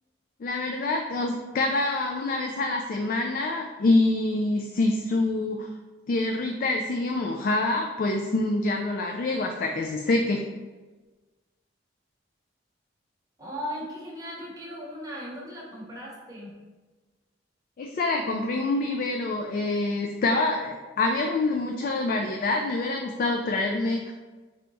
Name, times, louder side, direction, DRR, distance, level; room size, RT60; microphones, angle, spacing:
voice 1, 0.4-5.7 6.1-10.4 17.8-24.1, left 2 dB, 50° left, 2 dB, 0.3 m, -26 dB
voice 2, 13.4-16.5, equal, 20° right, -3 dB, 0.9 m, -37 dB
3.4 x 2.8 x 4.0 m, 1.3 s
head